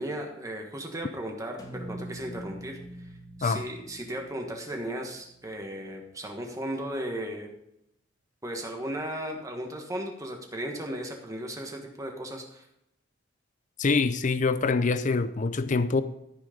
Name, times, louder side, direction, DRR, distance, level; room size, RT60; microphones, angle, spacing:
voice 1, 0.0-3.1 3.4-7.5 8.4-12.6, right 1 dB, 15° right, 1.4 m, -36 dB
sound 1, 1.6-5.8, right 1 dB, 20° left, 2.2 m, -44 dB
voice 2, 13.8-16.0, left 4 dB, 40° left, 0.5 m, -25 dB
14.0 x 6.3 x 5.1 m
head